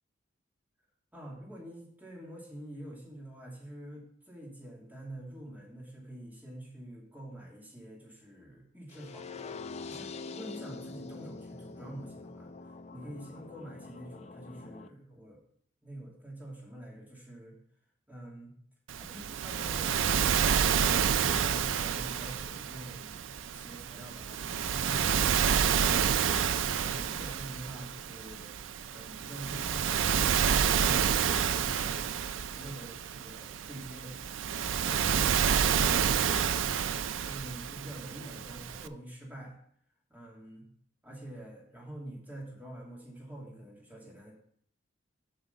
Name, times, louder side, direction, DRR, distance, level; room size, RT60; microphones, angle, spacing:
voice 1, 1.1-9.6 9.8-12.5 12.9-15.4 15.8-17.6 18.1-18.5 18.9-26.0 26.8-28.5 28.9-30.1 32.5-34.1 37.2-39.6 40.1-40.6 41.0-44.3, right 1 dB, 10° right, -3 dB, 2.5 m, -46 dB
sound 1, 8.9-14.9, left 4 dB, 35° left, 0.4 m, -44 dB
Waves surf, 18.9-38.9, right 7 dB, 75° right, 0.4 m, -29 dB
7.9 x 6.0 x 5.5 m, 0.64 s
head